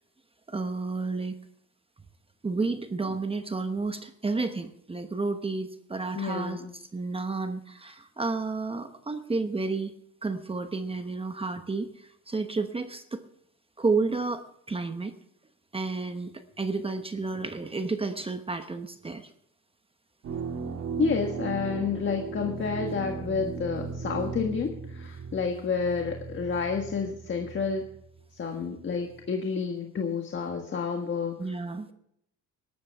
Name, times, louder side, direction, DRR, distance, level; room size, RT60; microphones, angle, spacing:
voice 1, 0.5-1.4 2.4-9.9 10.2-13.2 13.8-15.1 15.7-19.3 31.4-31.9, right 3 dB, 20° right, 8 dB, 1.0 m, -31 dB
voice 2, 6.1-6.7 21.0-27.8 28.4-31.4, left 5 dB, 40° left, 3 dB, 1.6 m, -30 dB
sound 1, 20.2-28.2 28.8-29.3, right 5 dB, 55° right, 2.0 m, -37 dB
18.5 x 12.0 x 3.5 m, 0.71 s
cardioid pair, 120°, 30 cm